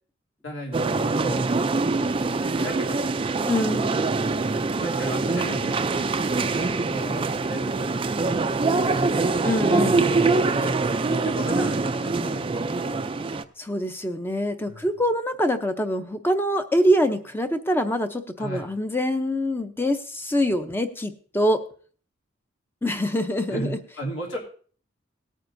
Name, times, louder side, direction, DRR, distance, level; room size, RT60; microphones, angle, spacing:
voice 1, 0.4-1.5 2.3-4.0 4.8-7.9 8.2-8.4 10.6-10.8 11.1-13.4 14.6-14.9 18.4-18.7 23.5-24.4, right 1 dB, 80° left, -2 dB, 3.0 m, -36 dB
sound 1, 0.7-13.4, right 3 dB, 25° right, 0.4 m, -24 dB
voice 2, 3.5-4.0 9.4-10.1 13.6-21.6 22.8-23.8, equal, 10° left, 8 dB, 0.6 m, -24 dB
18.0 x 9.2 x 2.6 m, 0.43 s
head